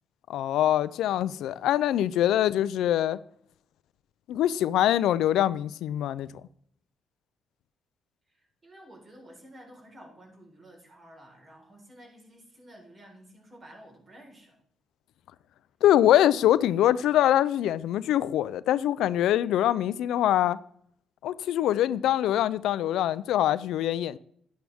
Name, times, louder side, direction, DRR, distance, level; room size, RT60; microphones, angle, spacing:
voice 1, 0.3-3.2 4.3-6.3 15.8-20.6 21.2-24.2, left 12 dB, 85° left, 0.4 m, -24 dB
voice 2, 8.6-14.6, right 1 dB, 35° right, 4.3 m, -51 dB
11.0 x 10.5 x 3.5 m
cardioid pair, 90°, 0 cm